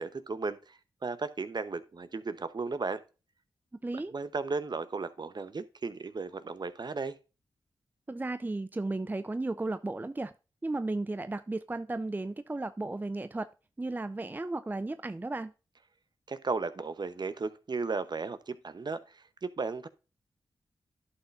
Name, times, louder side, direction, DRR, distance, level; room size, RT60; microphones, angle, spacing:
voice 1, 0.0-3.0 4.1-7.1 16.3-19.9, right 4 dB, 50° right, 0.9 m, -35 dB
voice 2, 3.8-4.1 8.1-10.3 10.6-13.5 13.8-15.5, right 2 dB, 20° right, 0.4 m, -34 dB
11.0 x 5.9 x 2.6 m
cardioid pair, 45°, 9 cm